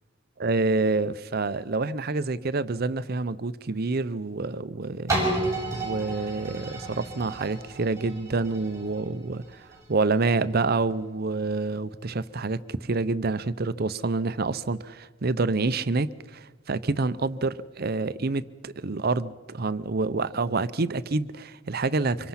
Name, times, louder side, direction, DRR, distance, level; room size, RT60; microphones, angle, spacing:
voice 1, 0.4-5.1 5.7-22.3, right 3 dB, 50° right, 0.7 m, -27 dB
sound 1, 5.1-10.8 11.4-11.5, right 2 dB, 15° right, 6.6 m, -32 dB
25.5 x 23.5 x 5.8 m
head